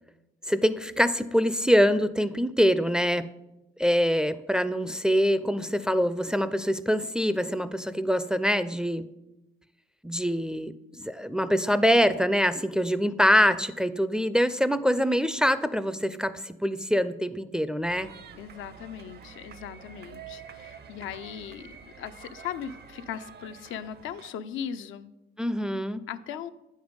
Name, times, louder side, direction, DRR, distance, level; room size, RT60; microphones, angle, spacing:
voice 1, 0.5-3.3 3.8-9.0 10.0-18.1 25.4-26.0, equal, 5° right, 12 dB, 0.4 m, -24 dB
sound 1, 17.8-24.3, right 7 dB, 55° right, 0.6 m, -47 dB
voice 2, 18.3-25.1 26.1-26.5, left 8 dB, 85° left, 10 dB, 0.5 m, -38 dB
8.7 x 5.3 x 5.2 m, 0.96 s
cardioid pair, 90°, 20 cm